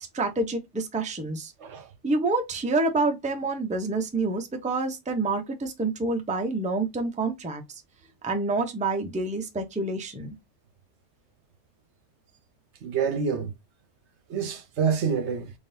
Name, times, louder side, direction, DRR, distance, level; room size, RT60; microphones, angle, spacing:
voice 1, 0.1-1.5 2.0-7.6 8.2-10.3, right 3 dB, 10° right, 0.4 m, -27 dB
voice 2, 12.8-13.5 14.3-15.5, right 6 dB, 60° right, 1.0 m, -27 dB
3.8 x 3.6 x 2.6 m
omnidirectional pair, 1.4 m